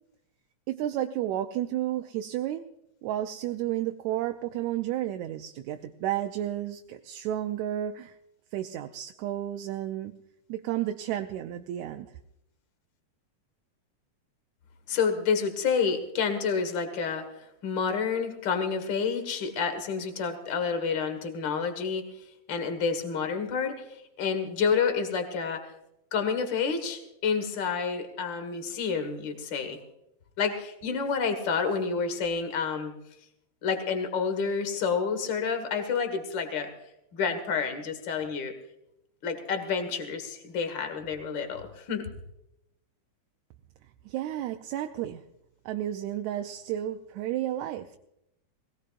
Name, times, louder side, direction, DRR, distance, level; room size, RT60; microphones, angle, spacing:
voice 1, 0.7-2.7 3.0-8.1 8.5-10.1 10.5-12.1 44.1-45.2 45.7-48.0, right 12 dB, 80° right, 6 dB, 1.9 m, -32 dB
voice 2, 14.9-22.0 22.5-25.7 26.1-29.8 30.4-32.9 33.6-36.7 37.1-38.5 39.2-42.1, left 5 dB, 45° left, 7 dB, 2.1 m, -29 dB
21.5 x 18.0 x 2.5 m, 0.82 s
omnidirectional pair, 3.4 m